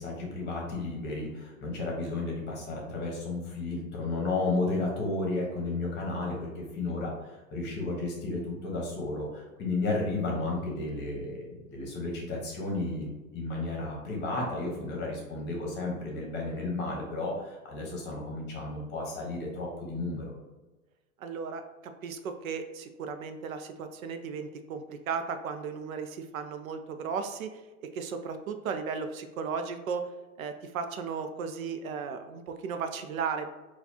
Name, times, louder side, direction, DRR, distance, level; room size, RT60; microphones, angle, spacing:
voice 1, 0.0-20.3, left 2 dB, 25° left, -1 dB, 1.0 m, -33 dB
voice 2, 21.2-30.0 30.4-33.5, right 5 dB, 75° right, 7 dB, 0.6 m, -35 dB
4.1 x 2.3 x 2.8 m, 1.2 s
hypercardioid pair, 120°, 42 cm